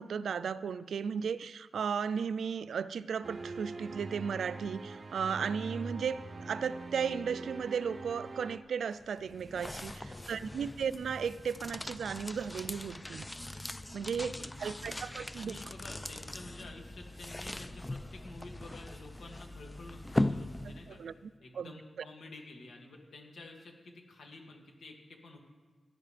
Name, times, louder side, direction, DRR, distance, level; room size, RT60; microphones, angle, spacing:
voice 1, 0.0-13.3 13.9-15.6 20.9-21.7, right 6 dB, 90° right, 16 dB, 0.4 m, -35 dB
sound 1, 3.2-8.6, right 3 dB, 40° right, 0.7 m, -43 dB
sound 2, 8.9-21.1, left 1 dB, 10° left, 0.3 m, -39 dB
voice 2, 10.0-10.8 14.1-15.0 15.3-21.0 21.4-25.4, left 2 dB, 75° left, 1 dB, 2.2 m, -50 dB
18.0 x 11.0 x 3.3 m, 1.4 s
wide cardioid pair, 145°, 0 cm